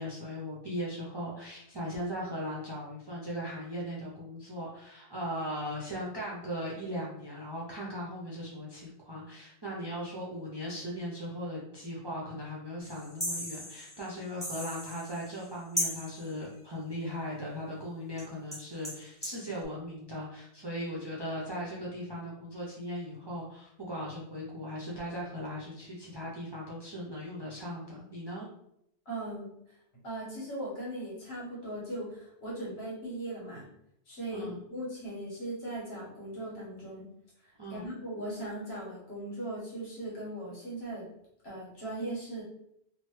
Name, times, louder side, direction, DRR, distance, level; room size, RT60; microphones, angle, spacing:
voice 1, 0.0-28.5 34.3-34.6 37.6-37.9, equal, 40° right, -5 dB, 0.4 m, -38 dB
sound 1, 12.8-15.5 15.8-16.3 18.2-18.3 18.5-19.4, equal, 5° left, 1.0 m, -37 dB
voice 2, 29.0-29.6 30.0-33.7 34.1-37.1 37.7-41.1 41.4-42.4, right 1 dB, 70° left, -6 dB, 1.5 m, -38 dB
3.0 x 2.1 x 3.0 m, 0.76 s
omnidirectional pair, 1.1 m